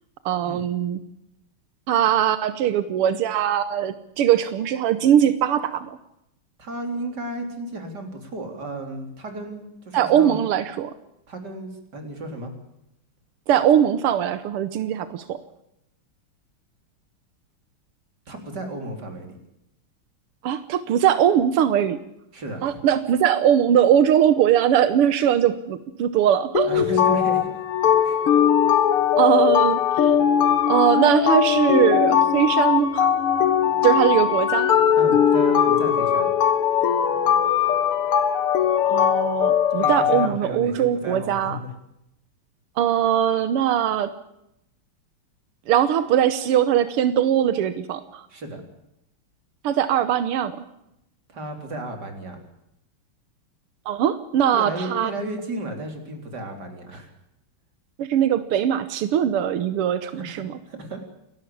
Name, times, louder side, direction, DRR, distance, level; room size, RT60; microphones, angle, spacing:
voice 1, 0.3-1.0 1.9-6.0 9.9-10.9 13.5-15.4 20.4-22.0 22.6-26.8 29.2-30.2 30.7-33.1 33.8-34.7 38.9-41.6 42.8-44.1 45.7-48.3 49.6-50.6 53.9-55.1 58.0-60.6, right 10 dB, 90° right, 12 dB, 1.9 m, -21 dB
voice 2, 6.6-10.4 11.3-12.5 18.3-19.4 22.3-22.8 26.6-27.5 28.0-28.2 35.0-36.3 39.8-41.7 48.3-48.6 51.3-52.4 54.5-57.1 60.1-61.0, right 2 dB, 50° right, 4 dB, 4.2 m, -33 dB
sound 1, 26.5-40.3, left 9 dB, 85° left, 2.4 m, -20 dB
29.0 x 12.0 x 8.6 m, 0.83 s
omnidirectional pair, 2.4 m